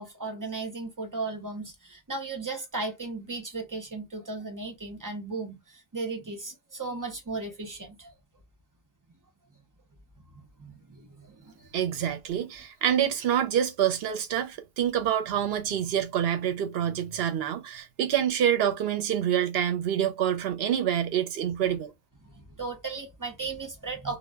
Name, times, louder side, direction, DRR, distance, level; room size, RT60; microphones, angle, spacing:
voice 1, 0.0-8.1 10.6-11.7 22.2-24.2, right 3 dB, 25° right, 0.5 m, -36 dB
voice 2, 11.7-21.9, right 9 dB, 75° right, 0.8 m, -27 dB
2.1 x 2.0 x 3.3 m
omnidirectional pair, 1.1 m